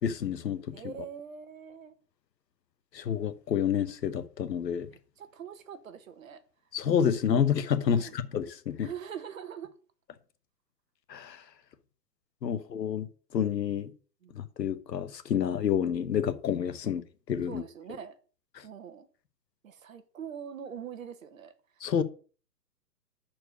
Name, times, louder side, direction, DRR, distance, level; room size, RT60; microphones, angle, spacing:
voice 1, 0.0-0.6 2.9-4.9 6.7-8.9 11.1-11.4 12.4-13.1 13.3-13.9 14.3-17.6 21.8-22.0, left 8 dB, 85° left, 1.1 m, -29 dB
voice 2, 0.6-1.9 4.9-6.4 7.8-8.1 8.8-9.7 12.4-12.6 14.2-14.3 16.8-17.0 17.4-18.1 18.6-19.1 19.6-21.5, right 8 dB, 55° right, 1.3 m, -43 dB
6.5 x 4.5 x 6.5 m
hypercardioid pair, 165°, 49 cm